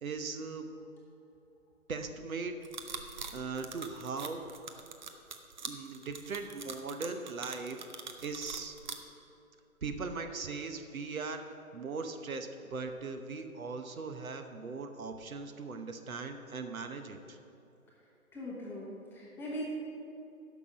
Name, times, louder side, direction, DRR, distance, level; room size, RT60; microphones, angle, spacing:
voice 1, 0.0-0.7 1.9-2.5 3.3-4.4 5.6-7.9 8.2-8.8 9.8-17.4, right 4 dB, 70° right, 7 dB, 1.0 m, -39 dB
sound 1, 2.6-8.9, right 5 dB, 35° right, 0.6 m, -43 dB
voice 2, 18.3-19.7, equal, 5° left, -6 dB, 1.0 m, -40 dB
10.5 x 6.1 x 6.0 m, 2.8 s
figure-of-eight pair, 140°, 43 cm